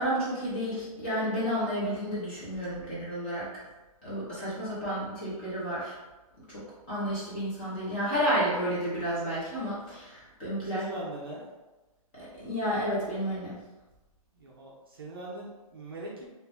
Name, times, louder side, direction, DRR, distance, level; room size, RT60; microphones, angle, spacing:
voice 1, 0.0-3.5 4.0-6.0 6.5-6.6 6.9-10.8 12.2-13.6, equal, 15° left, -9 dB, 0.8 m, -31 dB
voice 2, 10.6-11.5 14.3-16.3, right 1 dB, 40° right, -3 dB, 0.6 m, -41 dB
2.6 x 2.4 x 3.4 m, 1.1 s
hypercardioid pair, 175°, 19 cm